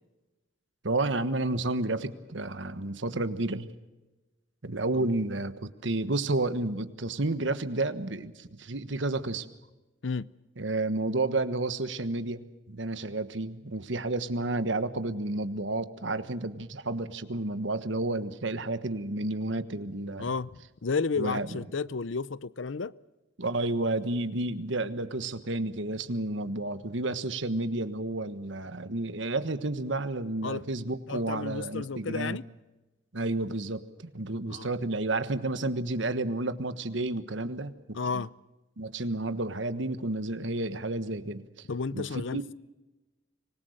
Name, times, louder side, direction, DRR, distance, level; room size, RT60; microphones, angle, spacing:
voice 1, 0.8-3.7 4.6-9.5 10.6-20.3 21.2-21.6 23.4-32.4 33.1-38.2 38.8-41.7 41.9-42.4, right 2 dB, 70° right, 1.4 m, -31 dB
voice 2, 20.2-22.9 30.4-30.7 31.1-32.4 34.5-34.7 37.9-38.3 41.7-42.5, left 4 dB, 70° left, 0.6 m, -32 dB
25.5 x 20.5 x 6.5 m
head